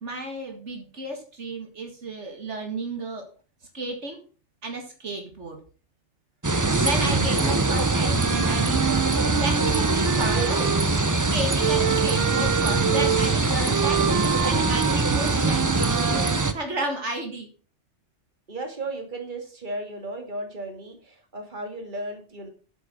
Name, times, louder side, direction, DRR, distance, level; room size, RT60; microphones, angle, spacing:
voice 1, 0.0-3.2 3.7-4.2 4.6-5.6 6.8-9.0 9.3-10.6 11.3-14.0 14.5-17.5, right 2 dB, 70° right, 3 dB, 2.2 m, -32 dB
sound 1, 6.4-16.5, right 3 dB, 20° right, 0.7 m, -23 dB
Wind instrument woodwind instrument, 8.1-11.0 11.6-16.4, right 10 dB, 85° right, 1.1 m, -28 dB
voice 2, 10.1-10.8 18.5-22.5, right 2 dB, 40° right, 4 dB, 2.4 m, -34 dB
8.3 x 8.1 x 6.3 m, 0.39 s
omnidirectional pair, 1.2 m